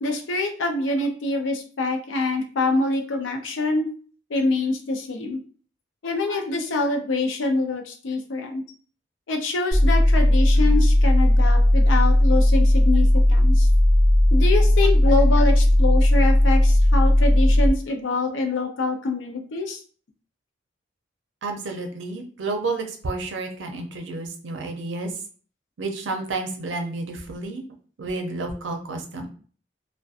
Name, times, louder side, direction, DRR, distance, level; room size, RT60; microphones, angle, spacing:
voice 1, 0.0-3.9 4.3-5.4 6.0-8.6 9.3-13.7 14.3-19.8, left 2 dB, 85° left, 4 dB, 0.5 m, -25 dB
sound 1, 9.7-17.7, left 1 dB, 50° left, 0.8 m, -16 dB
voice 2, 21.4-25.1 25.8-27.7 28.0-29.3, right 3 dB, 80° right, 4 dB, 0.5 m, -30 dB
2.6 x 2.1 x 2.4 m, 0.42 s
head